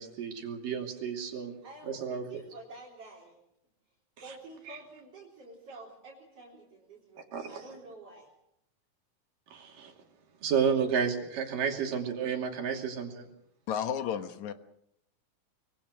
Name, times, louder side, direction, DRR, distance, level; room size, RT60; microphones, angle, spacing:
voice 1, 0.0-1.5 1.9-2.3 4.2-4.3 4.7-4.8 7.3-7.6 9.5-9.9 10.4-13.3, right 7 dB, 75° right, 3 dB, 4.4 m, -31 dB
voice 2, 1.6-3.4 4.2-8.3, right 3 dB, 45° right, -3 dB, 5.0 m, -49 dB
voice 3, 13.7-14.5, left 8 dB, 65° left, 9 dB, 2.4 m, -32 dB
25.0 x 23.0 x 6.3 m, 0.77 s
omnidirectional pair, 3.9 m